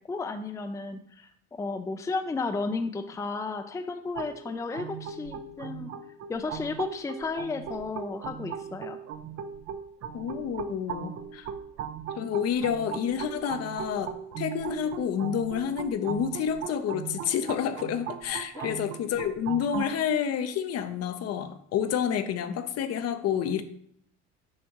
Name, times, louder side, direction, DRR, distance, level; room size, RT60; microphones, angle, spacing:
voice 1, 0.0-5.9 6.3-9.0 18.5-18.8, left 3 dB, 10° left, 7 dB, 0.5 m, -33 dB
sound 1, 4.2-19.9, right 8 dB, 50° right, 0.6 m, -38 dB
voice 2, 10.1-11.5 12.2-23.6, left 8 dB, 50° left, 9 dB, 0.7 m, -29 dB
7.3 x 5.1 x 3.0 m, 0.66 s
supercardioid pair, 85°, 33 cm